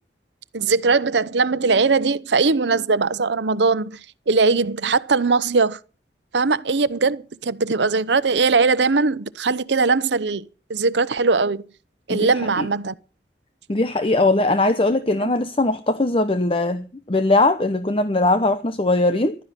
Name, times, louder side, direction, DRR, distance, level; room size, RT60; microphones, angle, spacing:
voice 1, 0.5-4.0 4.3-5.8 6.3-11.6 12.1-12.9, right 4 dB, 85° right, 0.8 m, -20 dB
voice 2, 13.7-19.3, left 2 dB, 30° left, 0.8 m, -20 dB
15.0 x 12.5 x 5.9 m
head